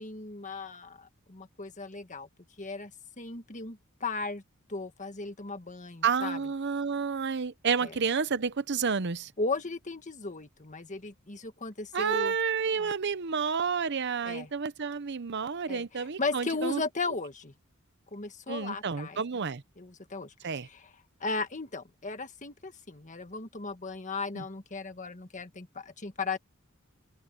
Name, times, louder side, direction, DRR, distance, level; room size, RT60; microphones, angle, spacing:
voice 1, 0.0-2.3 2.6-2.9 3.2-4.4 4.7-6.4 7.8-7.9 9.4-12.3 12.8-12.9 14.2-14.5 15.7-15.8 16.2-17.5 18.1-19.2 19.8-20.3 20.7-20.8 21.2-26.4, left 3 dB, 35° left, 1.7 m, -36 dB
voice 2, 6.0-9.3 11.9-16.8 18.5-19.6 20.4-20.7 24.3-24.4, right 6 dB, 55° right, 0.7 m, -30 dB
open air
head